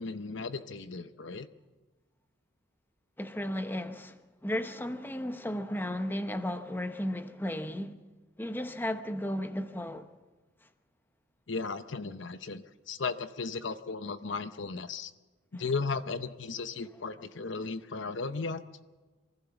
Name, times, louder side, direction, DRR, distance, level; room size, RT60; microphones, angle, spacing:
voice 1, 0.0-1.5 11.5-15.1 15.5-18.6, left 4 dB, 60° left, 0.8 m, -35 dB
voice 2, 3.2-8.0 8.4-10.1 15.5-15.6, left 1 dB, 10° left, 0.9 m, -34 dB
24.0 x 15.5 x 7.1 m
head